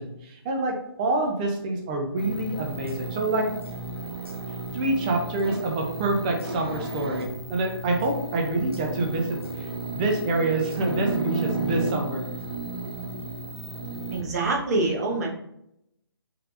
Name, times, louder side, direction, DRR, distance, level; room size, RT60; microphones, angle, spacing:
voice 1, 0.0-3.5 4.7-9.7 9.9-12.3 14.2-14.3, right 2 dB, 20° right, 2 dB, 0.6 m, -27 dB
sound 1, 2.2-14.2, right 2 dB, 65° right, 1.0 m, -33 dB
voice 2, 14.1-15.3, right 2 dB, 40° right, -2 dB, 1.1 m, -25 dB
5.7 x 3.3 x 2.5 m, 0.79 s
figure-of-eight pair, 140°, 14 cm